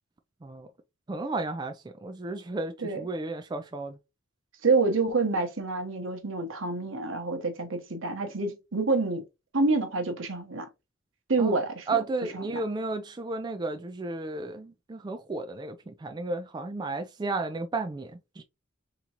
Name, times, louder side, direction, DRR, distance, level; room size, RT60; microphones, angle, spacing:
voice 1, 1.1-4.0 11.4-11.5 11.9-18.4, right 3 dB, 20° right, 0.3 m, -33 dB
voice 2, 4.6-9.2 9.5-10.7 11.3-12.0 12.3-12.6, right 3 dB, 75° right, 1.0 m, -27 dB
3.7 x 2.9 x 2.8 m
head